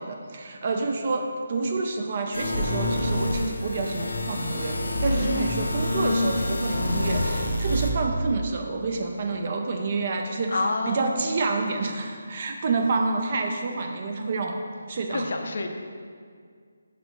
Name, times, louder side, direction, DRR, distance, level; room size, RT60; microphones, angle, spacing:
voice 1, 0.0-14.6 14.9-15.3, right 3 dB, 30° right, 3 dB, 0.4 m, -28 dB
sound 1, 2.3-7.9, left 1 dB, 85° left, 0.8 m, -27 dB
voice 2, 5.2-5.8 10.5-11.1 15.1-15.7, left 3 dB, 50° left, 4 dB, 0.6 m, -29 dB
5.0 x 4.6 x 5.2 m, 2.1 s
hypercardioid pair, 175°, 0 cm